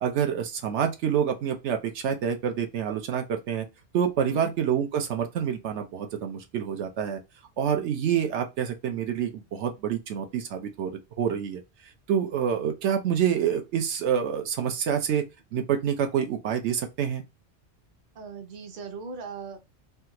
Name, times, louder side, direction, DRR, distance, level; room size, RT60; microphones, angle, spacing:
voice 1, 0.0-3.7 3.9-7.2 7.6-10.9 11.2-11.6 12.1-15.2 15.5-17.2, right 8 dB, 85° right, 0.9 m, -27 dB
voice 2, 18.1-19.6, right 4 dB, 50° right, 0.8 m, -39 dB
3.4 x 2.3 x 2.8 m
omnidirectional pair, 1.2 m